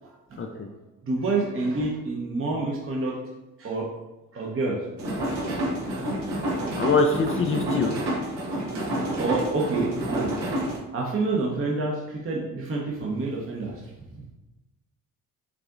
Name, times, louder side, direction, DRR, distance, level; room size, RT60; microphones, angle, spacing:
voice 1, 0.4-0.7 6.7-8.0, left 3 dB, 35° left, 3 dB, 0.5 m, -24 dB
voice 2, 1.0-3.2 3.6-3.9 4.3-4.8 6.1-6.7 9.2-10.3 10.9-13.8, right 3 dB, 35° right, -2 dB, 0.9 m, -28 dB
sound 1, 5.0-10.8, right 1 dB, 75° right, 1.2 m, -29 dB
5.0 x 3.4 x 2.5 m, 1.0 s
supercardioid pair, 60°, 39 cm